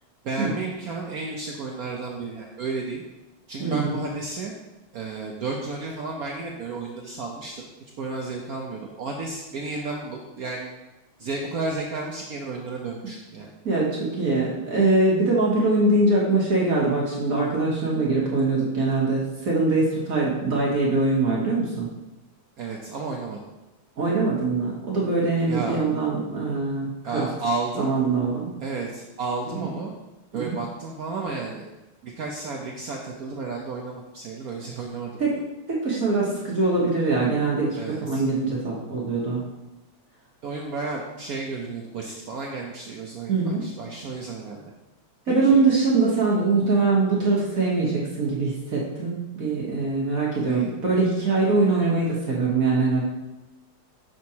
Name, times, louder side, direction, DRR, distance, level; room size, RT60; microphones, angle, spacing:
voice 1, 0.2-3.0 3.5-4.5 4.9-7.7 8.0-10.7 11.2-13.5 22.6-23.4 25.5-25.8 27.0-27.9 28.6-29.9 30.3-31.7 32.0-35.4 37.8-38.2 40.4-44.6 45.3-45.6 50.5-50.7, right 3 dB, 75° right, -1 dB, 0.8 m, -32 dB
voice 2, 3.6-3.9 13.0-13.1 13.6-21.8 24.0-27.3 27.8-28.5 29.4-29.7 30.3-30.6 35.2-35.4 35.7-39.4 43.3-43.7 45.3-53.0, right 3 dB, 50° right, -4 dB, 1.3 m, -23 dB
6.3 x 6.0 x 2.8 m, 1.0 s
omnidirectional pair, 2.3 m